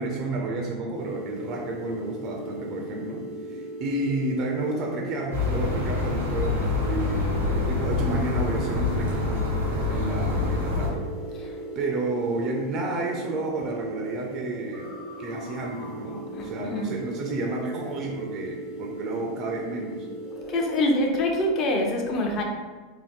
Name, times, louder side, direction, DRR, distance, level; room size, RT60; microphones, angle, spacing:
voice 1, 0.0-3.2 3.5-9.4 9.9-11.1 11.8-14.9 15.2-20.1, right 2 dB, 45° right, 0 dB, 0.4 m, -31 dB
sound 1, 0.9-20.6, right 1 dB, 75° left, 0.8 m, -38 dB
sound 2, 5.3-10.9, left 3 dB, 90° right, 0.9 m, -26 dB
voice 2, 16.3-16.9 20.5-22.4, left 1 dB, 45° left, 1 dB, 0.6 m, -25 dB
2.8 x 2.0 x 3.5 m, 1.4 s
hypercardioid pair, 90°, 0 cm